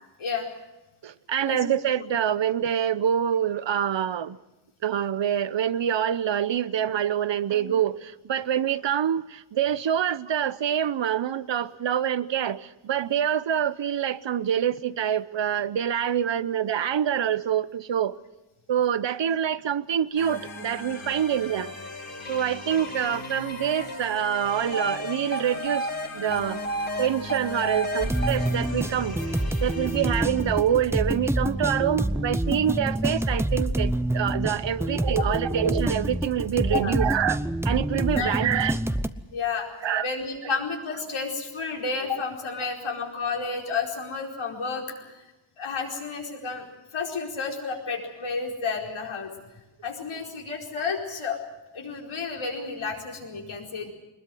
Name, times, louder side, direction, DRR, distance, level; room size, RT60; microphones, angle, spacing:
voice 1, 1.0-4.4 4.8-18.2 18.7-21.7 22.3-25.9 26.1-26.6 27.0-29.3 29.6-37.4 37.6-38.8 39.8-40.1 40.4-40.5 42.6-42.7, right 9 dB, 65° right, 16 dB, 0.9 m, -26 dB
sound 1, 20.2-30.9, left 2 dB, 45° left, 4.9 m, -39 dB
sound 2, 22.2-26.1 26.3-28.5, right 1 dB, 20° left, 1.9 m, -33 dB
sound 3, 28.0-39.1, right 1 dB, 5° right, 0.7 m, -27 dB
voice 2, 39.3-39.7 40.0-45.2 45.6-46.7 46.9-49.3 49.8-51.4 51.7-53.9, left 5 dB, 85° left, 0 dB, 4.7 m, -31 dB
22.0 x 21.0 x 7.8 m, 1.0 s
wide cardioid pair, 145°, 47 cm